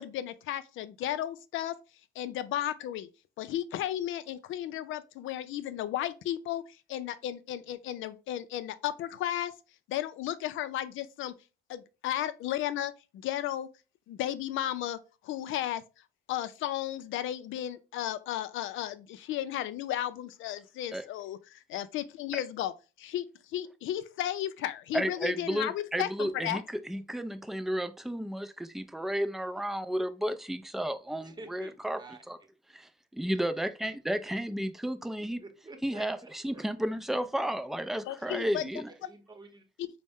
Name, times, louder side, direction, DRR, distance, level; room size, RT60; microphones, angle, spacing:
voice 1, 0.0-1.8 2.2-3.1 3.4-9.5 9.9-11.3 11.7-13.7 14.1-15.8 16.3-26.6 38.1-38.7 39.8-39.9, left 12 dB, 80° left, 0.4 m, -34 dB
voice 2, 24.9-32.0 32.3-32.4 32.7-35.4 35.8-38.9, right 1 dB, ahead, 0.4 m, -33 dB
voice 3, 31.2-32.5 35.4-36.9 37.9-38.5 39.0-39.7, right 3 dB, 20° right, 0.9 m, -50 dB
4.1 x 2.1 x 3.5 m
cardioid pair, 90°, 20 cm